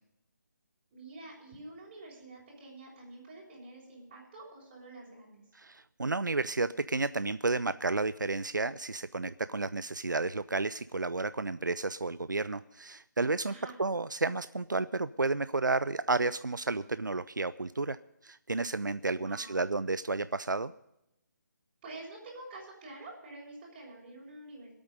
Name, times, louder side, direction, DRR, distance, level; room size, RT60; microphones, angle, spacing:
voice 1, 0.9-5.4 13.4-13.8 19.1-19.7 21.8-24.7, right 2 dB, 25° right, -5 dB, 5.7 m, -48 dB
voice 2, 5.5-13.5 13.8-18.0 18.2-20.7, right 3 dB, 85° right, 15 dB, 0.5 m, -31 dB
20.0 x 8.8 x 5.1 m, 0.85 s
figure-of-eight pair, 150°, 10 cm